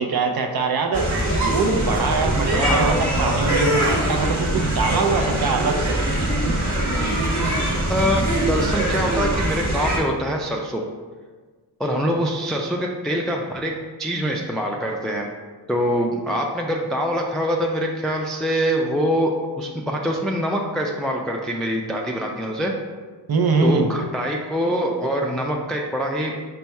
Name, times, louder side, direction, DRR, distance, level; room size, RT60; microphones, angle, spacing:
voice 1, 0.0-6.3 23.3-23.9, right 4 dB, 55° right, 4 dB, 0.6 m, -23 dB
sound 1, 0.9-10.0, right 1 dB, 40° right, 1.0 m, -22 dB
voice 2, 2.5-3.0 7.8-10.8 11.8-13.7 14.0-15.3 15.7-22.7 23.6-26.3, equal, ahead, 0 dB, 0.3 m, -24 dB
4.1 x 2.3 x 4.4 m, 1.4 s
cardioid pair, 55°, 46 cm